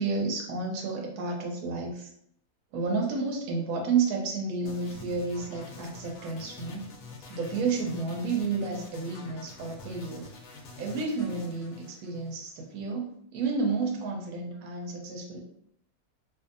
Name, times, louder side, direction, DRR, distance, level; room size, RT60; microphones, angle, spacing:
voice 1, 0.0-2.1 2.7-6.9 7.3-10.3 10.8-15.4, right 4 dB, 80° right, 0 dB, 1.1 m, -31 dB
sound 1, 4.7-12.7, left 3 dB, 70° left, 0.9 m, -46 dB
2.6 x 2.6 x 2.5 m, 0.68 s
omnidirectional pair, 1.6 m